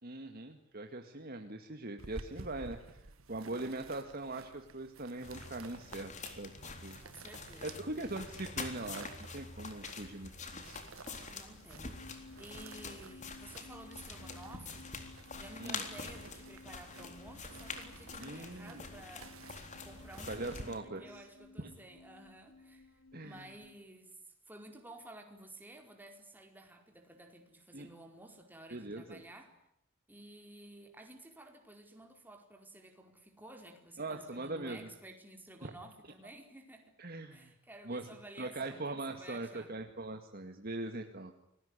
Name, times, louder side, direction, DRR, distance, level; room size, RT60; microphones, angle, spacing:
voice 1, 0.0-6.5 6.8-7.0 7.6-10.8 15.6-15.8 18.2-18.8 20.3-21.2 21.6-21.7 23.1-23.5 27.7-27.9 28.7-29.2 34.0-34.9 35.6-35.7 37.0-37.5 37.8-38.1 38.4-41.4, right 2 dB, 45° right, 5 dB, 2.1 m, -41 dB
sound 1, 2.0-20.6, right 3 dB, 90° right, 1.5 m, -54 dB
sound 2, 5.2-20.8, left 4 dB, 35° left, 3.8 m, -46 dB
voice 2, 7.0-7.9 11.3-14.9 15.3-29.6 30.1-36.9 37.3-39.7, right 1 dB, 10° right, 3 dB, 4.6 m, -53 dB
sound 3, 11.8-23.7, left 3 dB, 85° left, 3.2 m, -56 dB
28.5 x 21.0 x 9.9 m, 0.75 s
head